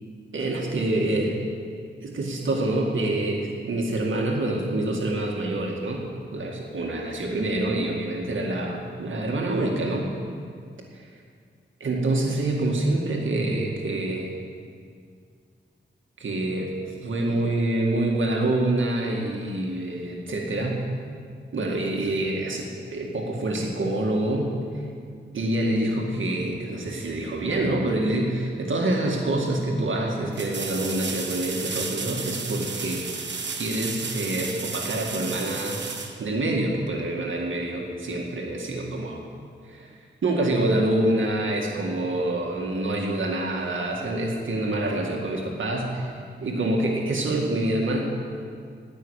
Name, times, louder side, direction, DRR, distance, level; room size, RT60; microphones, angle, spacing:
voice 1, 0.3-1.4 2.0-6.1 6.3-10.1 10.9-11.1 11.8-14.3 16.2-16.8 17.0-20.9 21.5-24.8 25.3-33.1 33.5-35.8 36.2-39.2 39.7-39.9 40.2-46.1 46.4-48.0, right 1 dB, 85° right, -1 dB, 2.0 m, -26 dB
sound 1, 30.3-36.9 39.8-39.9, right 5 dB, 70° right, 1.2 m, -33 dB
19.0 x 6.3 x 8.2 m, 2.2 s
wide cardioid pair, 125°, 20 cm